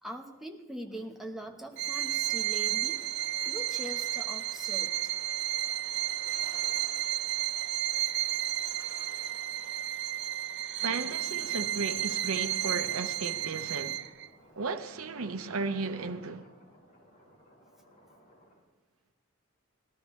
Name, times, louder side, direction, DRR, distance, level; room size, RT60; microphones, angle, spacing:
voice 1, 0.0-3.0 3.4-5.1, right 1 dB, ahead, 1.0 m, -42 dB
sound 1, 0.8-18.6, equal, 35° left, 3.7 m, -60 dB
Bowed string instrument, 1.8-14.3, right 13 dB, 55° right, 0.4 m, -32 dB
sound 2, 2.2-10.5, right 1 dB, 15° right, 2.6 m, -55 dB
voice 2, 10.8-14.0 14.6-16.5, right 4 dB, 85° right, 0.8 m, -34 dB
19.5 x 12.0 x 3.1 m
head